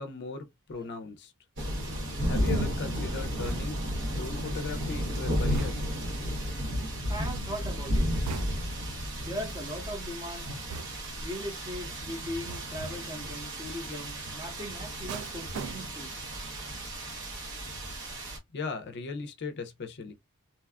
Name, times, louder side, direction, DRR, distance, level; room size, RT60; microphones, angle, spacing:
voice 1, 0.0-1.3 2.3-3.8 4.1-5.8 18.5-20.1, left 4 dB, 50° left, 0.5 m, -38 dB
sound 1, 1.6-18.4, equal, 55° right, 0.9 m, -33 dB
sound 2, 3.4-4.0 5.5-6.1 8.3-8.9 10.7-11.3 12.5-12.9 15.1-16.2 16.6-16.9, right 5 dB, 80° right, 0.3 m, -41 dB
voice 2, 7.1-8.1 9.2-10.5 11.2-16.1, equal, 20° right, 0.8 m, -39 dB
2.7 x 2.3 x 2.2 m
head